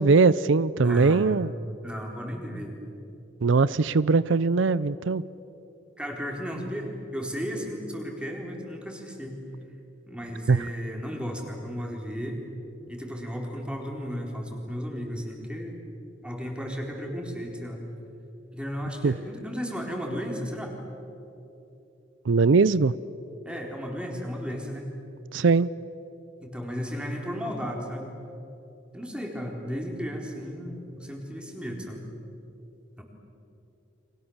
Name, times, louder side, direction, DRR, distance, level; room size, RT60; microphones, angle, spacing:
voice 1, 0.0-1.5 3.4-5.2 10.5-10.6 19.0-19.2 22.3-22.9 25.3-25.7, right 4 dB, 90° right, 18 dB, 0.5 m, -21 dB
voice 2, 0.8-1.3 1.8-2.7 6.0-9.4 10.1-12.4 12.9-15.7 16.2-17.8 18.5-20.8 23.4-24.9 26.4-28.1 28.9-32.1 33.0-33.1, equal, 5° right, 0 dB, 4.2 m, -34 dB
30.0 x 25.0 x 7.3 m, 2.9 s
head